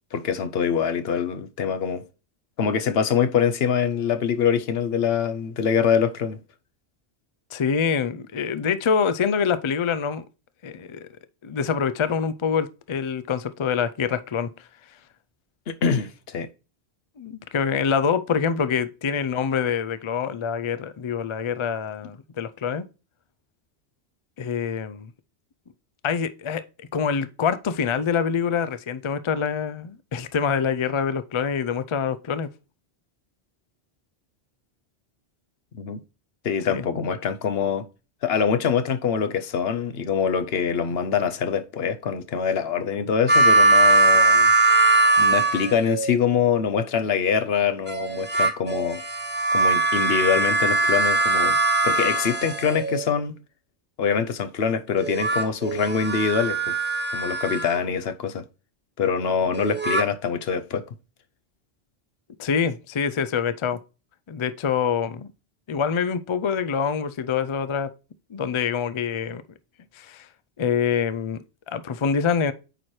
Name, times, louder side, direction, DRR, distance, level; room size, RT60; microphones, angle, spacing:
voice 1, 0.1-2.0 2.6-6.4 15.7-16.5 35.7-36.0 36.4-37.8 38.2-44.5 45.2-49.0 49.5-51.6 51.8-53.3 54.0-56.8 57.1-58.4 59.0-60.8, left 7 dB, 65° left, 0.9 m, -24 dB
voice 2, 7.5-10.2 10.6-11.1 11.4-14.5 17.2-22.9 24.4-25.1 26.0-32.5 36.7-36.8 62.4-63.8 64.3-65.3 65.7-67.9 68.3-69.4 70.0-70.3 70.6-72.5, left 6 dB, 45° left, 0.4 m, -25 dB
sound 1, 43.3-46.1 47.9-53.1 55.0-57.8 59.5-60.0, right 2 dB, 10° right, 0.7 m, -21 dB
8.9 x 4.4 x 3.1 m
omnidirectional pair, 1.1 m